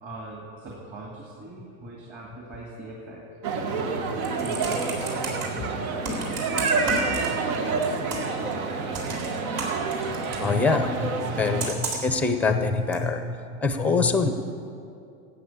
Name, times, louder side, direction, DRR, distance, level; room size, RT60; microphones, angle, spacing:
voice 1, 0.0-3.2 3.8-9.3, right 2 dB, 25° right, -3 dB, 2.1 m, -40 dB
sound 1, 3.4-11.7, right 4 dB, 75° right, 1.4 m, -28 dB
Computer keyboard, 4.0-5.4 6.0-7.6 7.8-8.4 8.9-10.5 11.6-12.2 12.9-13.0, right 3 dB, 60° right, 3.8 m, -33 dB
voice 2, 10.4-14.3, left 4 dB, 5° left, 7 dB, 0.5 m, -24 dB
13.0 x 8.6 x 8.7 m, 2.5 s
supercardioid pair, 150°, 42 cm